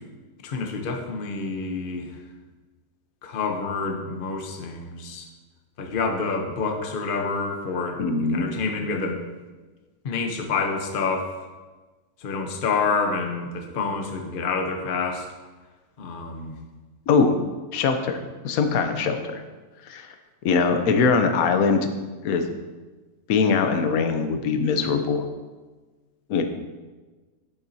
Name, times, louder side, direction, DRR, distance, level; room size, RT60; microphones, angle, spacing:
voice 1, 0.4-2.1 3.2-5.3 5.8-8.0 8.3-9.2 10.0-11.3 12.2-15.3 16.0-16.6, left 4 dB, 40° left, 3 dB, 0.8 m, -28 dB
voice 2, 8.0-8.4 17.1-17.4 17.7-19.4 19.9-20.1 20.4-21.9 22.2-22.4 23.3-25.3 26.3-26.4, left 5 dB, 65° left, 7 dB, 1.1 m, -22 dB
9.9 x 7.3 x 2.7 m, 1.3 s
omnidirectional pair, 1.7 m